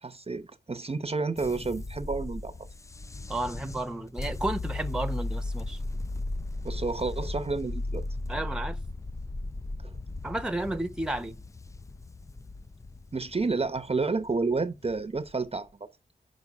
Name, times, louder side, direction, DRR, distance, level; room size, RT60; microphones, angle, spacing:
voice 1, 0.0-2.7 6.6-8.0 9.8-9.9 13.1-15.7, right 3 dB, 35° right, 0.7 m, -30 dB
sound 1, 1.4-15.6, left 2 dB, 20° left, 0.3 m, -36 dB
voice 2, 3.3-5.8 8.3-8.8 10.2-11.4, right 1 dB, 5° right, 0.9 m, -32 dB
5.9 x 4.6 x 5.3 m
cardioid pair, 55°, 17 cm